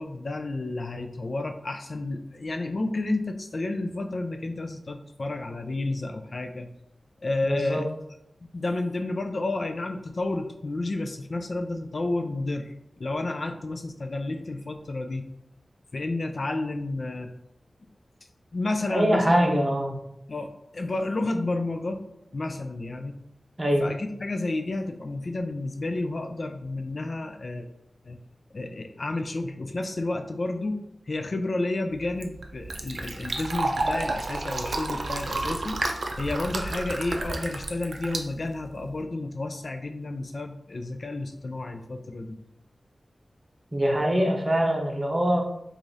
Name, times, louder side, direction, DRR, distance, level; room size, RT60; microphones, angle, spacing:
voice 1, 0.0-6.7 7.2-7.8 8.5-15.3 15.9-17.3 18.5-19.7 20.3-20.5 20.7-22.0 22.3-23.1 23.8-27.7 28.1-28.2 28.5-30.8 31.1-35.8 36.2-42.4, left 2 dB, 55° left, 6 dB, 0.3 m, -31 dB
voice 2, 7.4-7.8 18.9-20.0 23.6-23.9 43.7-45.4, equal, 30° right, 1 dB, 0.7 m, -23 dB
Fill (with liquid), 31.9-39.0, right 2 dB, 75° right, 0.4 m, -31 dB
4.8 x 2.4 x 2.6 m, 0.79 s
wide cardioid pair, 95°, 0 cm